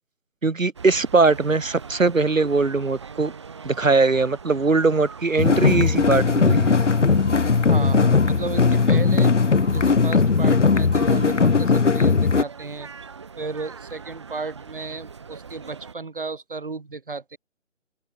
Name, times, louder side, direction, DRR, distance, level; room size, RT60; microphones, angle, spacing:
voice 1, 0.4-3.3 3.6-6.7 9.7-9.8, right 3 dB, 75° right, 2.5 m, -21 dB
sound 1, 0.7-15.9, right 5 dB, 20° right, 3.7 m, -42 dB
sound 2, 5.4-12.4, left 4 dB, 60° left, 1.1 m, -18 dB
voice 2, 7.7-9.3 9.7-12.9 13.4-17.4, right 4 dB, 40° right, 5.1 m, -34 dB
open air
figure-of-eight pair, 175°, 40 cm